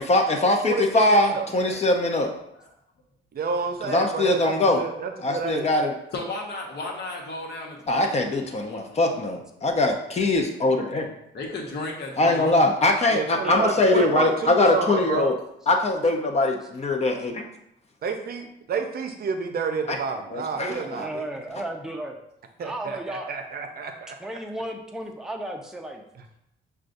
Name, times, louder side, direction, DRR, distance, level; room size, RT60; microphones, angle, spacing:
voice 1, 0.1-2.3 3.8-4.8 5.2-5.9 7.9-11.1 12.2-15.4 15.7-17.4 20.3-21.0, left 2 dB, 35° left, 2 dB, 0.7 m, -22 dB
voice 2, 0.6-1.5 3.3-5.7 13.1-15.3 18.0-21.3 22.6-24.3 26.2-26.3, right 5 dB, 50° right, 5 dB, 0.6 m, -30 dB
voice 3, 6.1-9.1 10.9-11.1 11.3-12.7, left 2 dB, 55° left, 0 dB, 1.1 m, -35 dB
voice 4, 13.4-13.9 21.0-22.2 22.6-23.3 24.2-26.0, right 1 dB, 5° right, 2 dB, 0.6 m, -34 dB
6.1 x 2.3 x 2.6 m, 0.79 s
cardioid pair, 90°, 20 cm